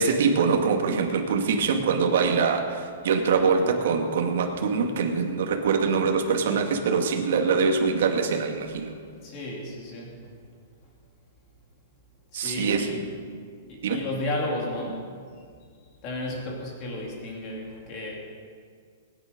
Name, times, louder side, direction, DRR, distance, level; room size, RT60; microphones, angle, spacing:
voice 1, 0.0-8.9 12.3-13.1 13.8-14.0, right 5 dB, 60° right, 3 dB, 1.9 m, -24 dB
voice 2, 9.2-10.1 12.3-13.0 13.7-15.0 16.0-18.2, left 1 dB, 25° left, -1 dB, 2.8 m, -33 dB
21.0 x 9.7 x 5.2 m, 2.1 s
hypercardioid pair, 175°, 0 cm